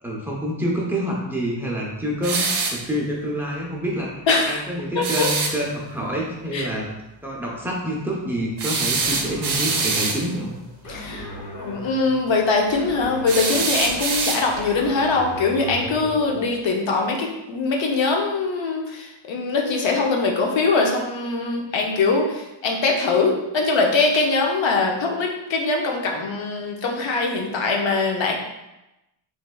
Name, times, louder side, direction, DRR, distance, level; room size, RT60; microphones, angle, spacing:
voice 1, 0.0-4.1 4.5-6.9 7.2-10.5, equal, 5° right, -4 dB, 0.6 m, -27 dB
sound 1, 2.2-2.8 5.0-5.6 8.6-10.2 13.3-14.7, right 4 dB, 60° right, 0.6 m, -24 dB
voice 2, 4.3-4.6 5.0-5.3 6.5-6.7 10.9-28.3, left 3 dB, 70° left, 0 dB, 0.7 m, -22 dB
sound 2, 9.0-16.4, left 1 dB, 40° left, 0.9 m, -37 dB
3.2 x 3.2 x 2.2 m, 0.94 s
cardioid pair, 120°, 47 cm